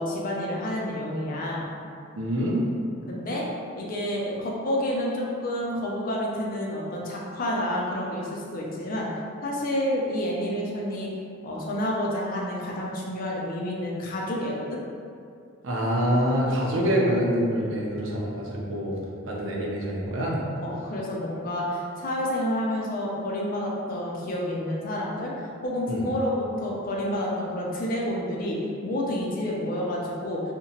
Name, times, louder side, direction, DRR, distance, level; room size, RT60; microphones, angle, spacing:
voice 1, 0.0-1.7 3.1-3.4 3.7-9.1 9.4-11.1 11.4-14.8 20.6-30.4, left 1 dB, 45° left, -3 dB, 0.4 m, -29 dB
voice 2, 2.2-2.7 15.6-19.0 19.2-20.4 25.9-26.0, equal, 85° right, -3 dB, 0.5 m, -25 dB
2.8 x 2.1 x 2.7 m, 2.4 s
head